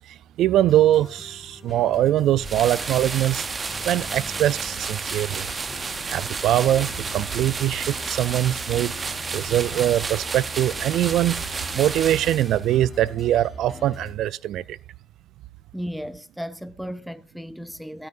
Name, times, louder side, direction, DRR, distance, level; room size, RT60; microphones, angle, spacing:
voice 1, 0.1-3.4 3.9-5.5 6.1-8.9 9.3-11.4 11.7-14.8, right 12 dB, 65° right, 0.4 m, -22 dB
sound 1, 0.5-14.1, left 3 dB, 25° left, 2.9 m, -42 dB
sound 2, 2.3-12.8, right 4 dB, 30° right, 0.8 m, -31 dB
voice 2, 15.7-18.1, equal, ahead, 0.5 m, -35 dB
12.5 x 9.5 x 2.6 m
supercardioid pair, 85°, 0 cm